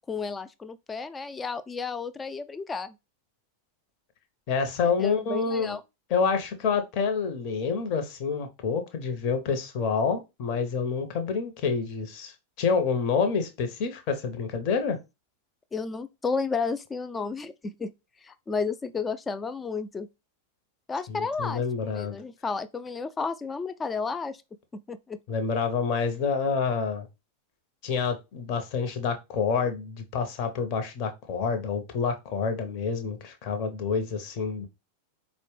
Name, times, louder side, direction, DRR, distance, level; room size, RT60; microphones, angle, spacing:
voice 1, 0.1-3.0 5.0-5.8 15.7-17.9 18.2-20.1 20.9-24.4 24.7-25.2, left 4 dB, 15° left, 0.3 m, -32 dB
voice 2, 4.5-5.8 6.1-15.0 21.1-22.2 25.3-27.1 27.8-34.7, left 5 dB, 45° left, 0.7 m, -28 dB
4.3 x 2.0 x 3.1 m
figure-of-eight pair, 90°, 0 cm